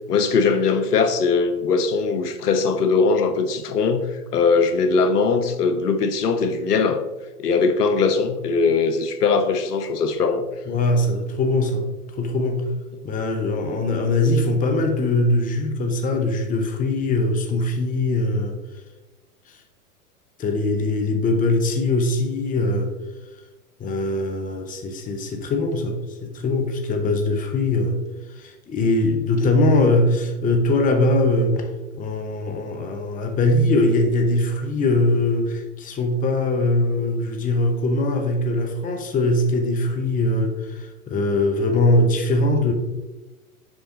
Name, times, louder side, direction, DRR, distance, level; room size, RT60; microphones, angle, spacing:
voice 1, 0.1-7.0 7.4-10.5, left 4 dB, 80° left, 9 dB, 1.0 m, -20 dB
voice 2, 10.7-11.9 12.2-12.7 13.0-18.6 20.4-22.9 23.8-26.0 26.2-28.0 28.4-31.7 31.9-42.7, left 2 dB, 15° left, 4 dB, 0.9 m, -21 dB
7.5 x 5.0 x 3.8 m, 1.1 s
hypercardioid pair, 115°, 46 cm